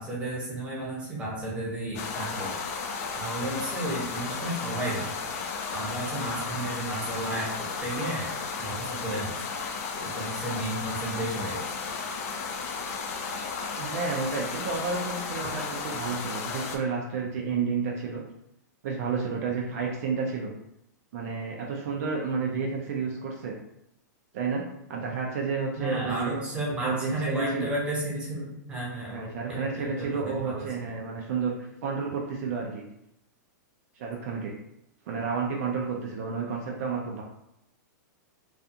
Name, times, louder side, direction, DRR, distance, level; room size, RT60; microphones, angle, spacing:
voice 1, 0.0-2.6 3.2-5.1 5.7-7.5 7.8-8.3 8.6-9.3 10.0-11.7 25.8-30.9, right 1 dB, 10° right, -5 dB, 0.8 m, -33 dB
sound 1, 1.9-16.8, left 5 dB, 50° left, 0.4 m, -34 dB
voice 2, 13.7-18.2 18.8-20.5 21.1-23.6 24.3-24.6 24.9-26.4 26.8-27.7 29.1-32.8 34.0-34.5 35.1-37.2, right 5 dB, 55° right, -1 dB, 0.4 m, -31 dB
2.4 x 2.4 x 2.7 m, 0.81 s
hypercardioid pair, 155°, 10 cm